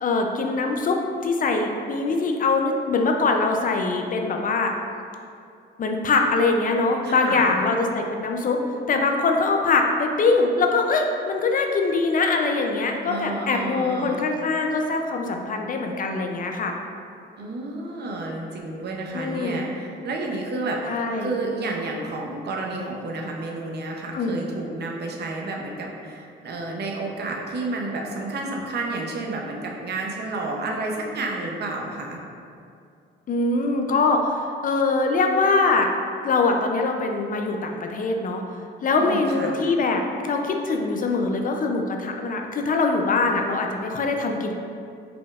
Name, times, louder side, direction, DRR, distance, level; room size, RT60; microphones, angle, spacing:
voice 1, 0.0-4.7 5.8-8.6 8.9-16.7 19.1-19.6 20.9-21.3 24.1-24.4 33.3-35.9 36.2-38.4 38.8-44.5, left 3 dB, 45° left, 3 dB, 0.4 m, -23 dB
voice 2, 7.0-7.5 13.1-14.2 17.4-32.2 39.0-39.6, right 2 dB, 55° right, -1 dB, 0.7 m, -30 dB
4.8 x 3.8 x 2.4 m, 2.4 s
cardioid pair, 90°, 20 cm